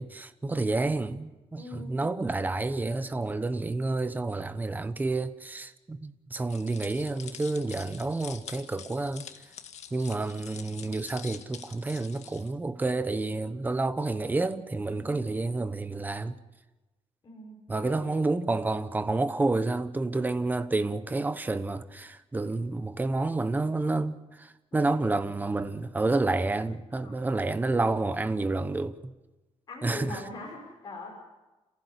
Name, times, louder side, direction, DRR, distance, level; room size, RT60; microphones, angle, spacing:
voice 1, 0.0-9.3 9.9-16.3 17.7-29.1 29.8-30.2, right 3 dB, 15° right, 0.9 m, -29 dB
voice 2, 1.5-2.1 14.9-15.3 17.2-18.1 24.7-25.2 27.0-27.1 29.7-31.2, left 2 dB, 35° left, 6.0 m, -43 dB
sound 1, 6.5-12.5, left 8 dB, 75° left, 1.7 m, -46 dB
28.0 x 15.5 x 8.3 m
wide cardioid pair, 170°, 12 cm